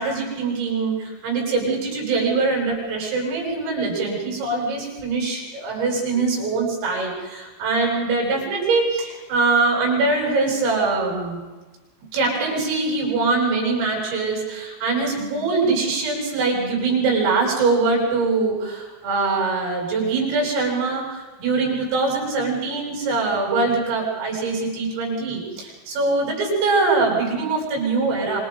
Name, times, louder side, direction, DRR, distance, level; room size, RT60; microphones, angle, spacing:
voice 1, 0.0-11.4 12.1-28.4, right 3 dB, 80° right, -2 dB, 9.7 m, -23 dB
26.5 x 26.5 x 4.0 m, 1.2 s
omnidirectional pair, 5.9 m